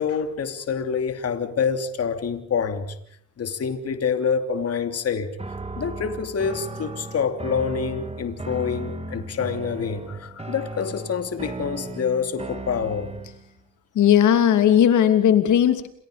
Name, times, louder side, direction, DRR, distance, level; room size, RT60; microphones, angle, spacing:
voice 1, 0.0-2.9 3.4-5.3 5.8-13.1, left 6 dB, 55° left, 3.0 m, -26 dB
sound 1, 5.4-13.5, right 2 dB, 20° right, 3.6 m, -36 dB
voice 2, 13.9-15.9, left 9 dB, 75° left, 2.9 m, -17 dB
29.5 x 27.0 x 5.1 m
cardioid pair, 90°, 30 cm